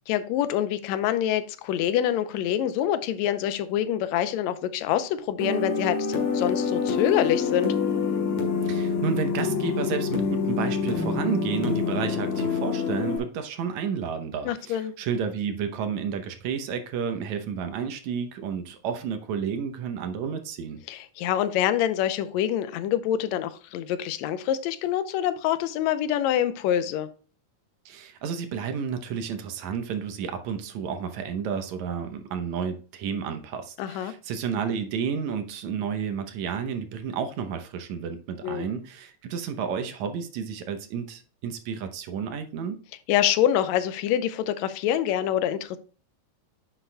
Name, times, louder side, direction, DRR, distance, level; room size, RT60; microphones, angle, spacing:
voice 1, 0.1-7.7 14.4-14.9 20.9-27.1 33.8-34.1 38.4-38.7 43.1-45.8, left 11 dB, 80° left, 1.8 m, -26 dB
sound 1, 5.4-13.2, left 5 dB, 60° left, 2.9 m, -26 dB
voice 2, 8.6-20.8 27.9-42.8, right 7 dB, 75° right, 2.1 m, -31 dB
9.9 x 6.7 x 2.2 m
omnidirectional pair, 3.5 m